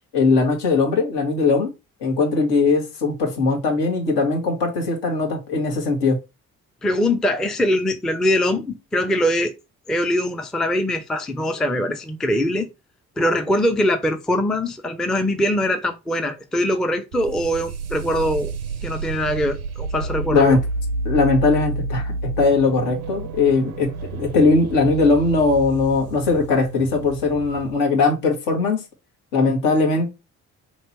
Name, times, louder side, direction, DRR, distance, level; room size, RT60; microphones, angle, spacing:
voice 1, 0.1-1.7 2.0-6.2 20.3-20.6 21.0-28.8 29.3-30.1, left 3 dB, 65° left, 1.4 m, -19 dB
voice 2, 6.8-9.5 9.9-12.7 13.2-18.5 18.8-20.6, left 1 dB, ahead, 0.4 m, -22 dB
sound 1, 17.1-27.8, right 3 dB, 85° right, 0.5 m, -30 dB
3.0 x 2.9 x 4.2 m
figure-of-eight pair, 45°, 43 cm